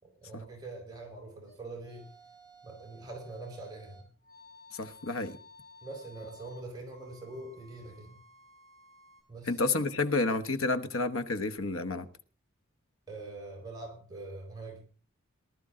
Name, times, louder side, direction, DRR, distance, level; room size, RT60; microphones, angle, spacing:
voice 1, 0.0-2.1 2.6-4.1 5.8-8.2 9.3-9.5 13.1-14.8, right 2 dB, 20° right, 4.3 m, -44 dB
sound 1, 1.5-9.2, left 1 dB, 15° left, 5.6 m, -56 dB
voice 2, 4.7-5.4 9.5-12.0, left 3 dB, 75° left, 1.2 m, -30 dB
19.5 x 12.0 x 3.7 m
head